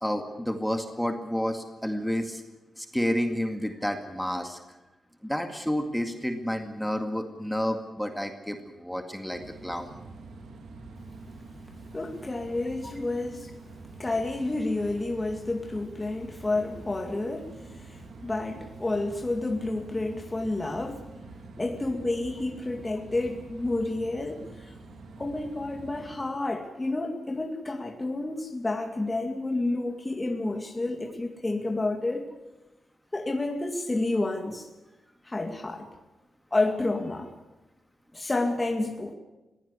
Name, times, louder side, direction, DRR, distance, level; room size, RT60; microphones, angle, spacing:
voice 1, 0.0-2.4 2.8-4.6 5.2-9.9, equal, ahead, 5 dB, 2.1 m, -30 dB
sound 1, 9.3-26.2, right 3 dB, 85° right, 2.7 m, -46 dB
voice 2, 11.9-13.5 14.0-21.0 21.6-24.7 25.2-32.3 33.1-34.7 35.2-35.9 36.5-37.3 38.1-39.1, left 2 dB, 20° left, 3 dB, 2.2 m, -30 dB
22.0 x 16.5 x 8.2 m, 1.1 s
cardioid pair, 95°, 0 cm